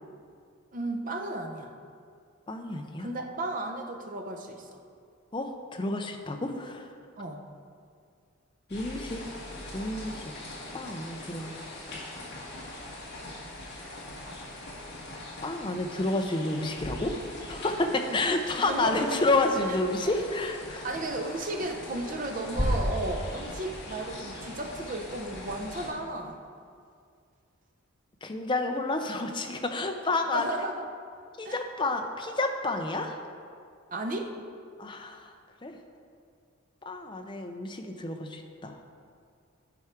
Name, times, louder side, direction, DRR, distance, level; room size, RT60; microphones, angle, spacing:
voice 1, 0.7-1.7 3.0-4.8 7.2-7.4 18.0-18.2 18.7-19.2 19.6-19.8 20.1-20.2 20.7-26.4 30.3-30.9 31.4-31.6 33.9-34.3, right 2 dB, 35° right, 3 dB, 0.6 m, -34 dB
voice 2, 2.5-3.1 5.3-6.9 8.7-9.2 9.7-10.3 10.7-11.5 15.4-17.2 17.5-20.8 28.2-30.5 31.4-33.2 34.8-35.3 35.6-35.7 36.9-38.8, left 2 dB, 20° left, 4 dB, 0.5 m, -30 dB
sound 1, 8.7-25.9, left 1 dB, 50° left, 1.8 m, -38 dB
11.0 x 4.6 x 4.5 m, 2.3 s
head